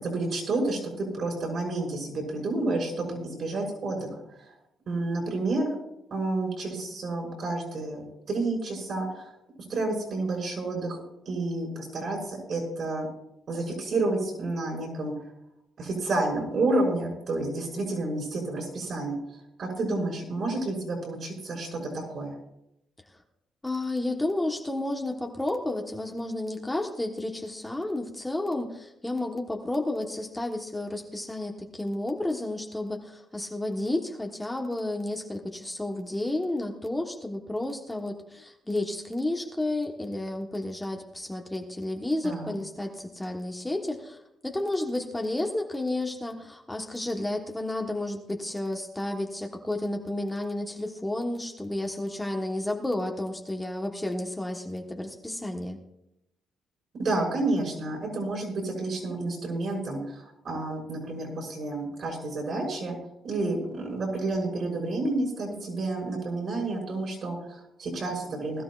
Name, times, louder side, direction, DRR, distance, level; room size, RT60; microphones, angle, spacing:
voice 1, 0.0-4.5 4.9-5.8 6.1-9.3 9.7-13.1 13.5-15.2 15.8-22.3 42.2-42.5 56.9-62.9 63.2-68.6, right 2 dB, 55° right, 0 dB, 6.0 m, -30 dB
voice 2, 23.6-44.2 44.4-55.8, left 1 dB, 10° left, 2 dB, 1.3 m, -31 dB
20.5 x 12.5 x 2.5 m, 0.83 s
cardioid pair, 90°, 0 cm